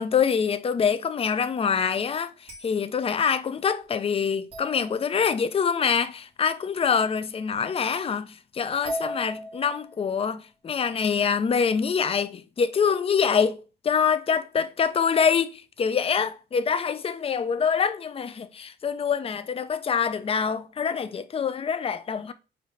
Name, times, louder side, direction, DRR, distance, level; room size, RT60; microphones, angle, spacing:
voice 1, 0.0-13.6 13.8-22.3, left 6 dB, 30° left, 0.5 m, -25 dB
sound 1, 2.5-2.8 4.5-5.6 7.6-7.7 8.8-10.1, equal, 30° right, 2.1 m, -37 dB
5.1 x 2.7 x 3.8 m
cardioid pair, 90°, 20 cm